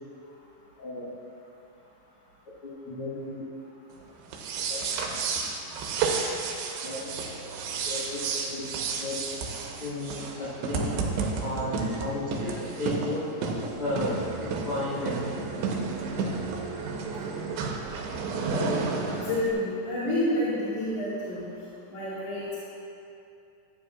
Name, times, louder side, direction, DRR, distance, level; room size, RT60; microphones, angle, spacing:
voice 1, 0.8-1.1 2.6-3.4 4.7-4.8 6.8-7.0 7.8-8.6 9.0-9.2 9.8-11.0 11.4-13.3 13.8-15.3, left 1 dB, 70° left, -10 dB, 1.3 m, -33 dB
sound 1, 4.3-19.5, right 4 dB, 80° right, 3.0 m, -31 dB
voice 2, 19.1-21.4 21.9-22.6, left 1 dB, 55° left, -11 dB, 2.9 m, -29 dB
14.0 x 10.0 x 2.4 m, 2.7 s
omnidirectional pair, 4.9 m